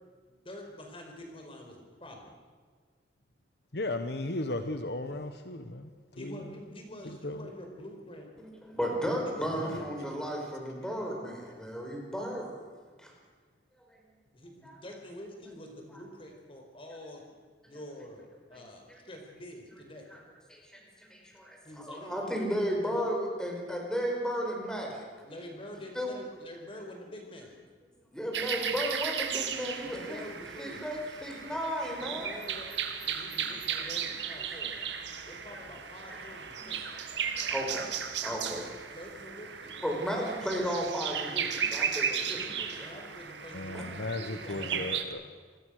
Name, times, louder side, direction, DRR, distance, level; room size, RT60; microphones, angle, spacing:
voice 1, 0.4-2.3 6.1-8.3 9.2-10.3 14.3-17.2 17.7-20.2 21.6-22.4 22.8-23.0 25.2-27.6 29.8-30.8 31.5-31.6 31.9-32.7 33.0-34.8 35.2-36.9 38.9-39.8 42.0-44.8, left 1 dB, 30° left, 2 dB, 4.8 m, -46 dB
voice 2, 3.7-5.9 6.2-6.4 7.0-7.5 9.5-9.8 43.5-45.2, left 2 dB, 65° left, 8 dB, 1.3 m, -36 dB
voice 3, 8.6-12.7 13.0-13.1 14.6-14.8 18.9-19.0 20.1-20.2 20.5-20.8 21.1-25.0 26.0-26.1 28.1-30.2 30.6-32.3 33.4-33.8 34.8-34.9 35.5-35.6 36.1-37.0 37.4-37.9 38.2-38.6 39.8-42.9 43.7-43.8, equal, 5° left, 0 dB, 5.3 m, -34 dB
sound 1, 28.3-45.0, right 7 dB, 80° right, 1.9 m, -35 dB
27.5 x 20.5 x 6.6 m, 1.5 s
head